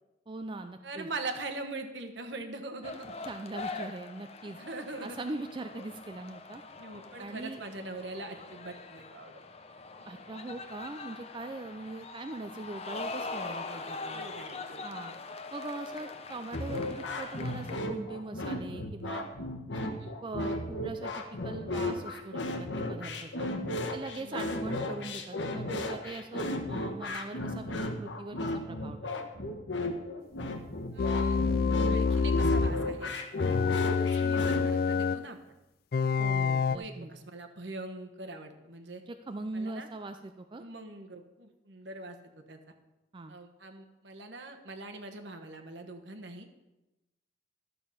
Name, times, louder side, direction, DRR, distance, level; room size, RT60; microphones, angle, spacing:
voice 1, 0.3-1.1 3.2-4.6 5.0-6.6 7.2-7.6 10.0-14.2 14.8-15.1 15.5-19.2 19.7-19.8 20.2-23.5 23.9-29.0 33.6-33.8 36.2-37.1 39.0-40.6 43.1-43.3, right 2 dB, 25° right, 7 dB, 0.4 m, -41 dB
voice 2, 0.8-3.1 4.6-5.2 6.8-9.3 11.7-11.8 14.1-15.0 20.0-20.1 24.1-24.4 30.9-31.5 31.9-33.2 33.4-35.6 36.7-39.0 39.5-39.9 40.6-42.6 43.3-46.5, right 2 dB, 70° right, 5 dB, 1.2 m, -42 dB
sound 1, 2.8-17.8, left 3 dB, 35° left, 0.7 m, -43 dB
sound 2, 16.5-34.6, left 1 dB, 75° left, 1.2 m, -34 dB
sound 3, 31.0-32.8 33.4-35.2 35.9-36.8, left 5 dB, 55° left, 0.3 m, -27 dB
12.0 x 6.8 x 5.7 m, 1.0 s
head